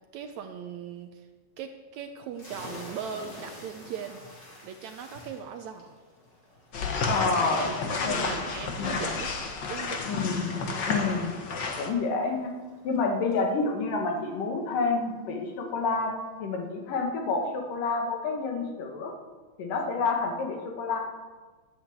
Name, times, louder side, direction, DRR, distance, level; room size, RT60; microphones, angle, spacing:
voice 1, 0.1-1.3 1.6-4.2 4.6-5.9 7.2-7.8 8.0-9.3 9.7-10.2, right 7 dB, 75° right, 6 dB, 1.8 m, -39 dB
sound 1, 2.3-15.7, left 1 dB, 30° left, 4.1 m, -50 dB
sound 2, 6.7-11.9, left 4 dB, 60° left, 1.1 m, -31 dB
voice 2, 6.9-8.3 8.8-9.0 10.1-10.5 10.9-11.3 11.7-12.5 12.8-19.1 19.6-21.0, left 4 dB, 75° left, 2 dB, 3.4 m, -29 dB
12.0 x 8.7 x 8.0 m, 1.4 s
omnidirectional pair, 3.8 m